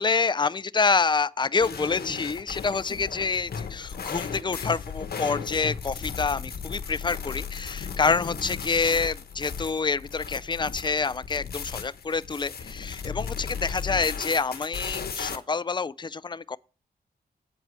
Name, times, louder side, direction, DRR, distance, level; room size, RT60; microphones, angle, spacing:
voice 1, 0.0-16.6, left 4 dB, 30° left, 0.4 m, -27 dB
sound 1, 1.6-15.4, left 6 dB, 70° left, 1.1 m, -36 dB
8.7 x 4.7 x 6.6 m
cardioid pair, 75°, 17 cm